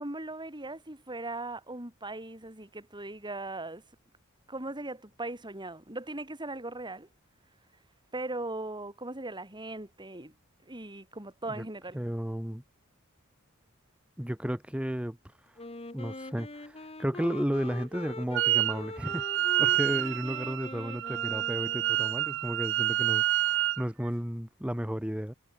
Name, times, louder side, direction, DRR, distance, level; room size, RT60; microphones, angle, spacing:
voice 1, 0.0-3.8 4.5-7.1 8.1-10.3 10.7-12.0, right 2 dB, 20° right, 5.7 m, -39 dB
voice 2, 11.9-12.6 14.2-15.6 15.9-25.3, equal, 5° right, 1.3 m, -33 dB
Wind instrument woodwind instrument, 15.6-22.2, left 2 dB, 30° left, 2.5 m, -43 dB
Wind instrument woodwind instrument 2, 18.3-18.8 19.0-23.8, right 14 dB, 60° right, 0.4 m, -28 dB
head